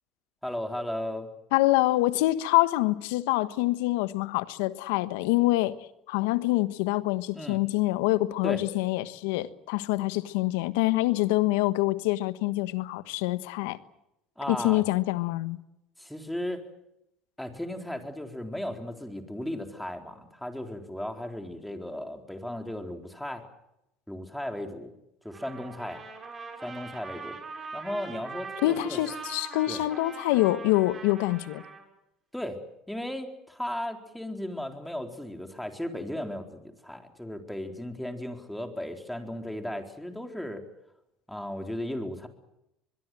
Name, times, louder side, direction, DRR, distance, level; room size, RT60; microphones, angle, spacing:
voice 1, 0.4-1.3 7.3-7.6 8.4-8.6 14.4-14.8 16.0-16.6 17.4-23.4 24.1-24.9 25.2-26.0 26.6-27.4 27.7-29.0 29.7-29.8 32.3-32.6 32.9-40.7 41.3-42.3, left 1 dB, 5° left, 4.2 m, -35 dB
voice 2, 1.5-5.8 6.1-13.8 14.5-15.6 28.6-31.6, left 18 dB, 80° left, 1.3 m, -26 dB
Trumpet, 25.3-31.8, right 4 dB, 30° right, 6.7 m, -42 dB
25.0 x 21.5 x 7.7 m
supercardioid pair, 85°, 0 cm